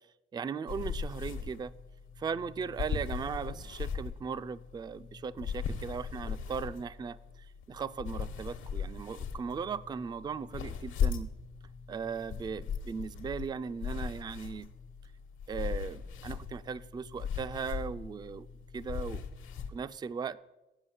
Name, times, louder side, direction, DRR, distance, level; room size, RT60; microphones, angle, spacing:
voice 1, 0.3-1.7 2.2-7.2 7.7-11.3 11.9-14.7 15.5-18.5 18.7-19.2 19.7-20.4, right 6 dB, 20° right, 16 dB, 0.3 m, -38 dB
sound 1, 0.7-19.7, left 6 dB, 80° left, 1.1 m, -38 dB
8.1 x 5.4 x 7.7 m, 0.99 s
cardioid pair, 90°, 20 cm